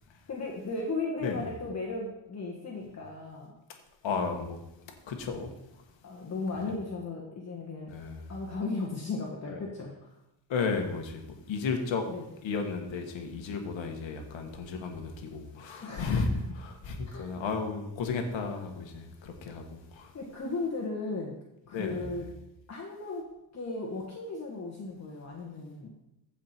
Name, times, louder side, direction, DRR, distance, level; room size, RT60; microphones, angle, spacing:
voice 1, 0.3-3.5 6.0-7.9 8.3-10.1 12.1-12.3 15.8-16.2 17.1-17.3 20.1-21.4 21.7-22.3 22.7-25.9, left 3 dB, 35° left, -2 dB, 1.6 m, -36 dB
voice 2, 4.0-4.6 5.1-5.5 6.5-6.7 7.9-8.3 9.5-9.6 10.5-12.0 12.4-20.1 21.7-22.1, left 4 dB, 70° left, 4 dB, 1.6 m, -33 dB
15.0 x 5.1 x 4.4 m, 0.86 s
cardioid pair, 120°, 47 cm